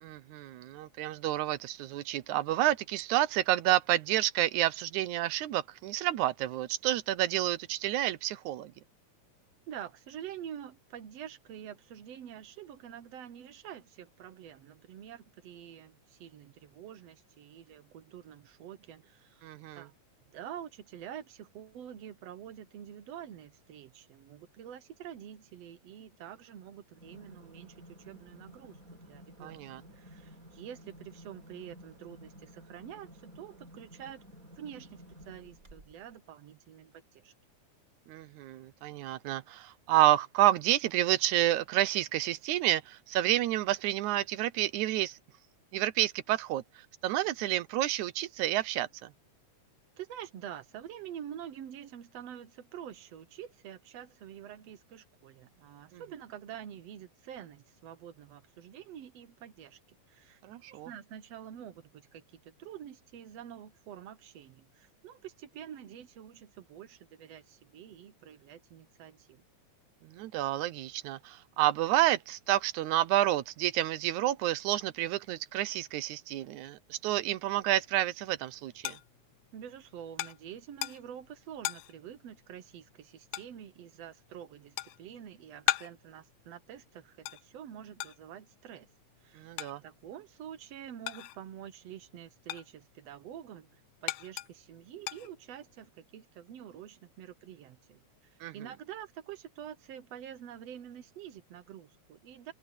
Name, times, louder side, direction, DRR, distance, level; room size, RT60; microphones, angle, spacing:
voice 1, 0.0-8.7 19.4-19.9 29.4-29.8 38.1-45.2 45.7-46.6 47.0-49.1 55.9-56.0 60.4-60.9 70.0-79.0 89.4-89.8 98.4-98.5, right 14 dB, 80° right, 2.2 m, -29 dB
voice 2, 9.7-19.5 19.7-19.9 20.3-28.8 29.1-29.6 29.9-34.2 34.6-37.3 50.0-60.4 60.7-69.4 79.5-88.9 89.2-89.5 89.8-102.5, right 10 dB, 65° right, 2.1 m, -47 dB
sound 1, 26.9-36.1, equal, 25° right, 6.0 m, -53 dB
sound 2, 77.8-91.6 92.0-95.9, left 16 dB, 85° left, 2.1 m, -40 dB
open air
omnidirectional pair, 3.4 m